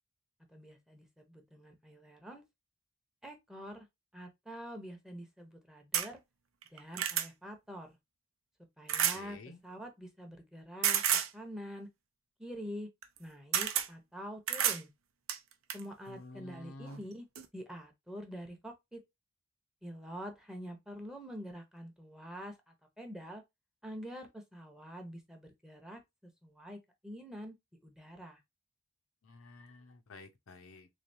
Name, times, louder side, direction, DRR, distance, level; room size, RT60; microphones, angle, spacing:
voice 1, 0.5-2.4 3.2-3.9 4.1-6.2 6.7-7.9 8.8-11.0 11.3-11.9 12.4-12.9 13.2-14.9 15.7-17.2 17.5-19.0 19.8-23.4 23.8-27.5 27.8-28.4, equal, 5° right, 0.7 m, -46 dB
sound 1, 5.9-6.1 6.6-7.3 8.9-9.2 10.8-11.3 13.0-13.2 13.5-13.9 14.5-14.8 15.3-15.8 16.9-17.0 17.3-17.4, right 9 dB, 80° right, 0.6 m, -30 dB
voice 2, 9.1-9.6 16.1-17.0 29.2-30.9, left 2 dB, 80° left, 0.7 m, -50 dB
3.8 x 3.2 x 2.6 m
head